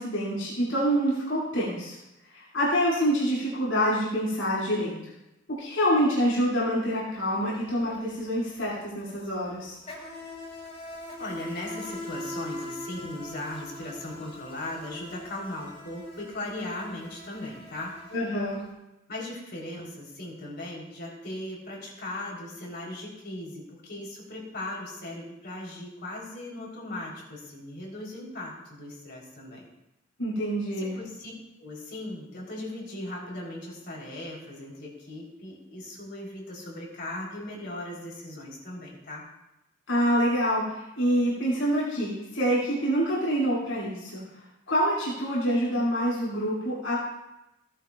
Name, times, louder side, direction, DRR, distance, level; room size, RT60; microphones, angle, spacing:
voice 1, 0.0-1.9 2.3-4.9 5.6-9.8 18.1-18.6 30.2-30.9 39.9-44.2 44.7-47.0, equal, 90° left, -7 dB, 5.2 m, -26 dB
Insect, 7.2-7.4 7.6-18.6, left 1 dB, 35° left, 4.3 m, -42 dB
voice 2, 11.2-18.0 19.1-29.6 30.8-31.3 31.6-39.2, left 1 dB, 55° left, -3 dB, 3.7 m, -38 dB
17.5 x 11.5 x 2.4 m, 0.92 s
head